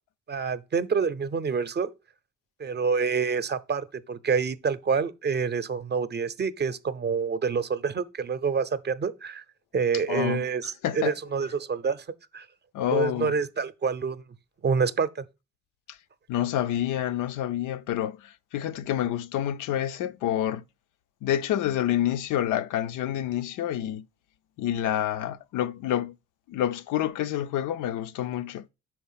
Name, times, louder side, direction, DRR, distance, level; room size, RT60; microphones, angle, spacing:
voice 1, 0.3-1.9 2.6-9.4 9.7-12.0 12.3-12.5 12.9-14.2 14.6-15.3, right 5 dB, 35° right, 0.6 m, -27 dB
voice 2, 10.1-10.5 10.8-11.1 12.7-13.3 16.3-20.6 21.2-24.1 24.6-26.2 26.5-28.7, left 11 dB, 85° left, 0.5 m, -28 dB
6.1 x 4.5 x 5.6 m
cardioid pair, 90°, 30 cm